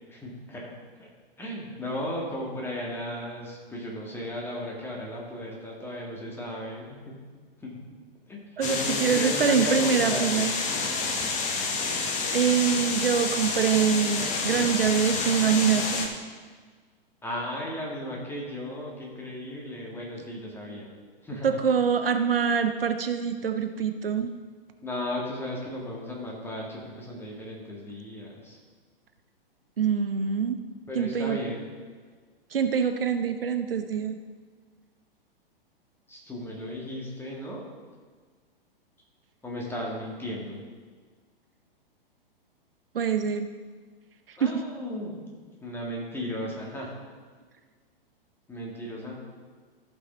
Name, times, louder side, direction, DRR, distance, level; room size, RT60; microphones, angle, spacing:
voice 1, 0.1-0.7 1.0-1.1 1.4-7.2 7.6-7.8 8.3-10.5 17.2-20.9 21.2-21.6 24.8-28.6 30.9-31.6 36.1-37.6 39.4-40.6 44.4-45.2 45.6-46.9 48.5-49.1, left 1 dB, 10° left, -3 dB, 1.9 m, -35 dB
sound 1, 8.6-16.1, left 4 dB, 25° left, 1.1 m, -29 dB
voice 2, 8.6-10.5 11.6-11.8 12.3-16.1 21.4-24.3 29.8-30.6 30.9-31.4 32.5-34.2 42.9-43.5 44.3-44.5, right 7 dB, 70° right, 8 dB, 0.8 m, -25 dB
14.5 x 5.9 x 3.9 m, 1.5 s
figure-of-eight pair, 110°, 29 cm